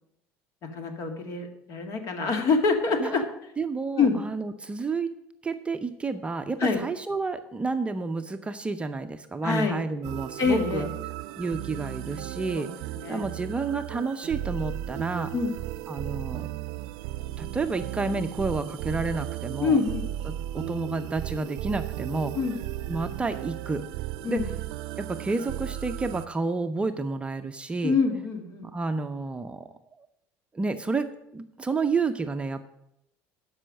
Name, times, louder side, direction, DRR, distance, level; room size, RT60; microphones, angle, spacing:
voice 1, 0.7-3.2 4.0-4.2 6.6-6.8 9.4-9.8 10.4-10.9 12.6-12.7 12.9-13.2 15.3-15.6 19.6-20.1 22.3-22.6 24.2-24.5 27.8-28.7, left 4 dB, 50° left, 5 dB, 1.9 m, -25 dB
voice 2, 3.6-5.1 5.4-10.9 11.4-12.7 13.1-15.3 15.9-16.5 17.4-19.8 20.3-22.3 22.9-23.8 24.2-24.4 25.0-27.9 28.6-29.7 30.5-31.1 31.3-32.6, right 3 dB, 15° right, 7 dB, 0.6 m, -30 dB
sound 1, 10.0-26.3, right 14 dB, 75° right, 0.5 m, -35 dB
12.5 x 5.6 x 6.4 m, 0.81 s
supercardioid pair, 120°, 7 cm